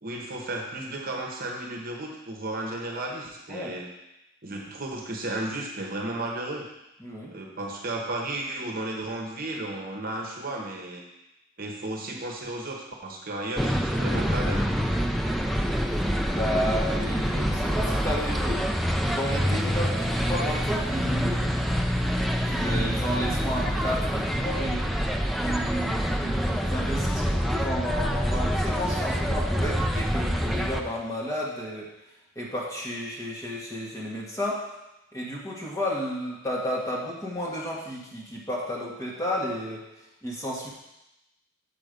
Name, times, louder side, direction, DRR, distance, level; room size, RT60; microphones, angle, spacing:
voice 1, 0.0-3.9 4.4-6.7 7.3-11.0 11.6-14.7, right 2 dB, 50° right, 1 dB, 1.1 m, -34 dB
voice 2, 7.0-7.4 16.3-18.6 19.1-21.4 22.4-24.8 25.3-31.9 32.3-34.6 35.1-39.8 40.2-40.7, equal, 15° left, -4 dB, 1.6 m, -32 dB
sound 1, 13.6-30.8, equal, ahead, 0.5 m, -26 dB
7.1 x 5.4 x 5.2 m, 0.92 s
head